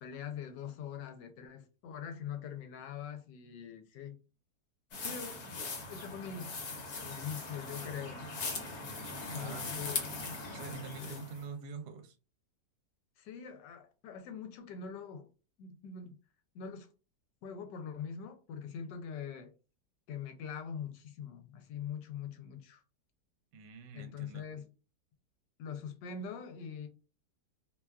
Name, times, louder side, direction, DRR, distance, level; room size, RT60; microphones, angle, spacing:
voice 1, 0.0-4.2 5.0-5.6 5.8-6.6 7.0-8.4 9.3-10.0 11.0-11.2 13.2-15.3 15.6-16.2 16.5-16.9 17.4-19.5 20.1-22.8 23.9-24.7 25.6-26.9, left 7 dB, 85° left, 1.2 m, -43 dB
sound 1, 4.9-11.4, left 3 dB, 65° left, 1.2 m, -40 dB
voice 2, 9.3-9.7 10.5-12.2 23.5-24.4, right 5 dB, 75° right, 1.1 m, -45 dB
2.9 x 2.3 x 2.2 m
omnidirectional pair, 1.8 m